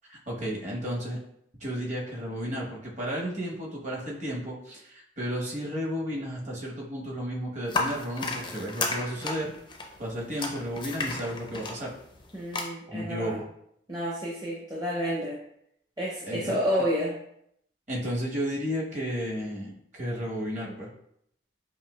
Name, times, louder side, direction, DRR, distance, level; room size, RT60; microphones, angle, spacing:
voice 1, 0.1-1.2 1.6-9.5 10.0-11.9 12.9-13.5 16.3-16.6 17.9-20.9, equal, 40° right, -2 dB, 0.9 m, -33 dB
sound 1, 7.7-12.6, left 3 dB, 25° left, 0.4 m, -33 dB
voice 2, 12.3-13.4 13.9-15.4 16.0-17.2, equal, 20° right, -6 dB, 0.6 m, -30 dB
5.5 x 2.7 x 2.2 m, 0.72 s
head